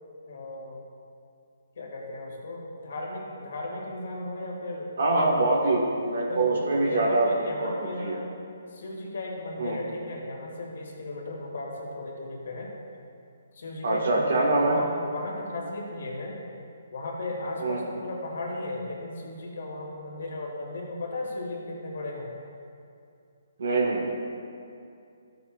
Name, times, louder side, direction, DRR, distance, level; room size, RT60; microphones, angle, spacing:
voice 1, 0.2-0.8 1.8-5.5 6.3-8.2 8.7-12.7 13.5-16.4 16.9-22.3, left 2 dB, 65° left, -2 dB, 2.1 m, -35 dB
voice 2, 5.0-8.2 9.6-9.8 13.8-14.8 17.6-17.8 23.6-24.1, right 2 dB, 70° right, -1 dB, 1.6 m, -24 dB
13.0 x 6.8 x 2.4 m, 2.5 s
hypercardioid pair, 150°, 0 cm